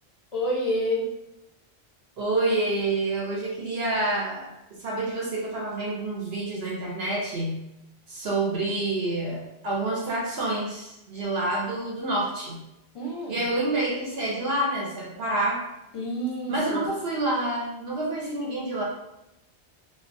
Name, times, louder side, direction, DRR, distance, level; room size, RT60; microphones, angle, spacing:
voice 1, 0.3-1.1 12.9-13.4 15.9-16.9, equal, 35° left, -5 dB, 0.6 m, -28 dB
voice 2, 2.2-4.5 4.8-7.7 8.1-12.6 13.3-15.6 16.5-18.8, right 2 dB, 65° right, -4 dB, 0.8 m, -28 dB
2.3 x 2.2 x 2.5 m, 0.87 s
omnidirectional pair, 1.2 m